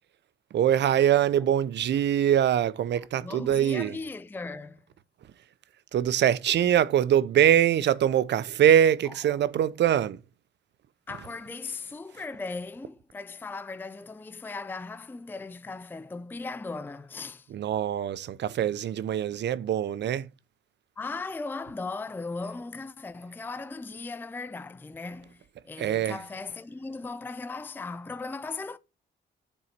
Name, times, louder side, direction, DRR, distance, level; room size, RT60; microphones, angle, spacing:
voice 1, 0.5-4.0 5.9-10.2 17.5-20.3 25.8-26.2, right 10 dB, 60° right, 0.6 m, -23 dB
voice 2, 3.2-4.8 9.1-9.2 11.1-17.5 21.0-25.4 25.6-28.8, left 3 dB, 10° left, 0.5 m, -37 dB
7.0 x 4.1 x 6.5 m
cardioid pair, 90°, 20 cm